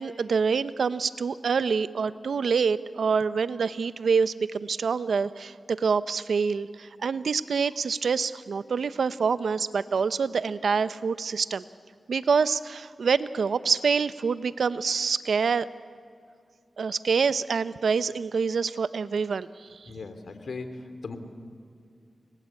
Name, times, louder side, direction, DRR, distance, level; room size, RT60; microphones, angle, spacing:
voice 1, 0.0-11.6 12.1-15.7 16.8-19.9, right 5 dB, 80° right, 14 dB, 0.7 m, -26 dB
voice 2, 19.9-21.2, left 4 dB, 75° left, 8 dB, 2.8 m, -38 dB
29.5 x 22.0 x 8.4 m, 2.3 s
cardioid pair, 45°, 0 cm